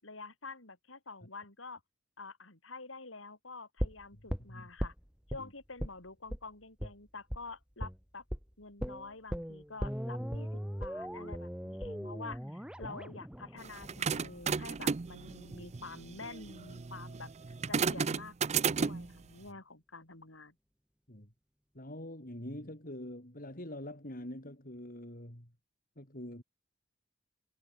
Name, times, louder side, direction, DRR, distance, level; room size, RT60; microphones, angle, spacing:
voice 1, 0.0-1.8 2.2-4.9 5.3-8.2 8.6-20.5, left 3 dB, 75° left, 5.1 m, -48 dB
sound 1, 3.8-5.4 5.8-6.0 6.3-6.4 6.8-6.9 7.3-7.4 7.8-8.0 8.3-8.4 8.8-14.8 15.1-15.2, equal, 5° right, 1.8 m, -39 dB
sound 2, 13.6-19.2, right 5 dB, 35° right, 0.5 m, -34 dB
voice 2, 21.7-25.5 26.0-26.4, left 1 dB, 45° left, 6.7 m, -45 dB
head